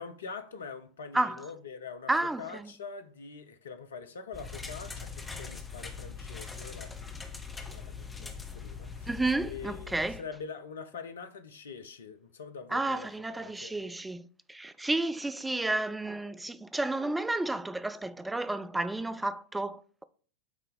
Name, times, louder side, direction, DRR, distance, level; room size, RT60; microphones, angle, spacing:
voice 1, 0.0-7.1 7.7-9.1 9.4-13.7, left 5 dB, 65° left, 0.7 m, -44 dB
voice 2, 1.1-1.4 2.1-2.7 9.1-10.2 12.7-20.0, right 2 dB, 5° right, 0.4 m, -31 dB
sound 1, 4.3-10.2, left 5 dB, 10° left, 0.8 m, -42 dB
8.2 x 2.9 x 5.2 m
figure-of-eight pair, 90°, 0 cm